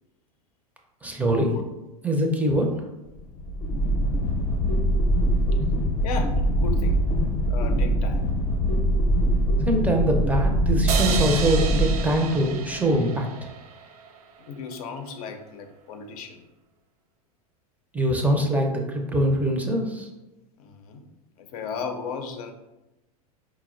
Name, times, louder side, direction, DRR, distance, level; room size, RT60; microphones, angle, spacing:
voice 1, 1.0-1.5 2.0-2.7 9.6-13.3 17.9-20.1, right 1 dB, 10° right, 2 dB, 0.5 m, -23 dB
sound 1, 3.1-12.6, equal, 35° left, 0.7 m, -23 dB
voice 2, 6.0-7.1 7.5-8.3 14.4-16.4 20.6-21.1 21.4-22.5, left 5 dB, 70° left, 5 dB, 0.5 m, -35 dB
sound 2, 10.9-14.2, right 6 dB, 70° right, 0.4 m, -32 dB
4.1 x 2.0 x 2.5 m, 0.99 s
hypercardioid pair, 95°, 19 cm